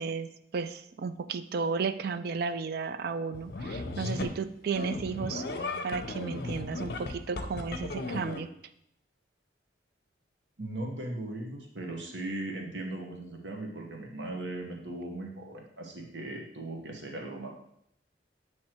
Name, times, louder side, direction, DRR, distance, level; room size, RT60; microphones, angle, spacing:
voice 1, 0.0-5.4 5.8-8.5, right 5 dB, 55° right, 11 dB, 0.4 m, -33 dB
sound 1, 3.3-4.4 4.7-8.4, left 2 dB, 60° left, 0.7 m, -36 dB
voice 2, 10.6-17.5, right 2 dB, 75° right, 1 dB, 1.1 m, -38 dB
7.6 x 3.1 x 4.5 m, 0.72 s
head